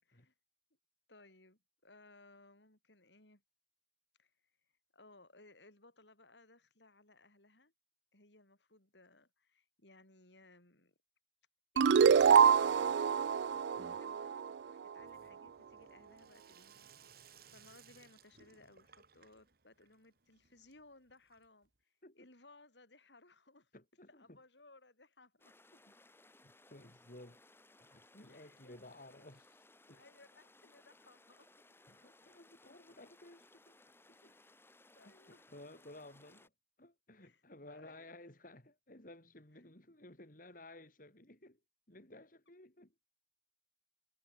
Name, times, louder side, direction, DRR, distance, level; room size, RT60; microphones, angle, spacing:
voice 1, 0.0-0.3 1.1-3.4 4.2-4.3 4.9-7.7 8.1-10.9 11.7-13.1 13.4-23.7 24.1-25.5 28.3-28.7 29.9-31.5 34.3-34.6 34.9-35.5 37.2-37.4 37.7-38.3, left 2 dB, 85° left, 7.3 m, -62 dB
sound 1, 11.8-15.0, right 7 dB, 80° right, 0.4 m, -26 dB
Sink (filling or washing), 15.0-21.8, right 7 dB, 55° right, 4.8 m, -63 dB
voice 2, 23.7-24.4 25.7-25.9 26.4-27.4 27.8-29.6 29.9-30.0 31.9-33.8 34.1-34.4 35.3-36.5 36.8-41.6 41.9-42.9, left 1 dB, 50° left, 4.2 m, -56 dB
sound 2, 25.4-36.5, left 2 dB, 15° left, 3.6 m, -64 dB
head